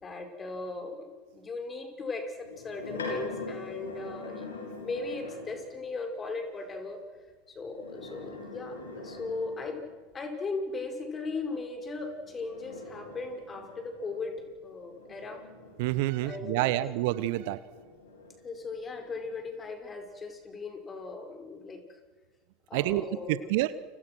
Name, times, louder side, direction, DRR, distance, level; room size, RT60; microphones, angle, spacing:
voice 1, 0.0-4.5 4.8-7.0 7.5-9.8 10.1-14.4 14.6-15.4 16.2-16.7 18.4-22.0 22.7-23.5, left 3 dB, 25° left, 5 dB, 5.8 m, -38 dB
sound 1, 2.4-5.7 7.6-10.0 11.9-17.1 17.7-19.4, left 3 dB, 80° left, 6.7 m, -43 dB
voice 2, 15.8-17.6 22.7-23.7, right 16 dB, 60° right, 17 dB, 1.1 m, -28 dB
30.0 x 27.0 x 6.3 m, 1.4 s
figure-of-eight pair, 75°, 0 cm